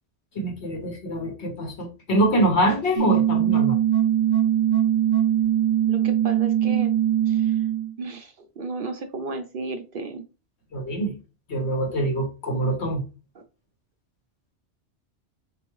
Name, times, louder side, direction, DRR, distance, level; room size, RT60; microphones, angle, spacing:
voice 1, 0.3-3.8 10.7-11.1 11.5-13.0, right 1 dB, 70° left, 1 dB, 1.5 m, -24 dB
sound 1, 3.0-7.9, right 11 dB, 45° left, 1.2 m, -21 dB
voice 2, 5.8-6.9 7.3-7.6 8.0-10.2, right 4 dB, 55° right, 6 dB, 0.7 m, -33 dB
4.5 x 3.0 x 3.0 m, 0.31 s
omnidirectional pair, 1.2 m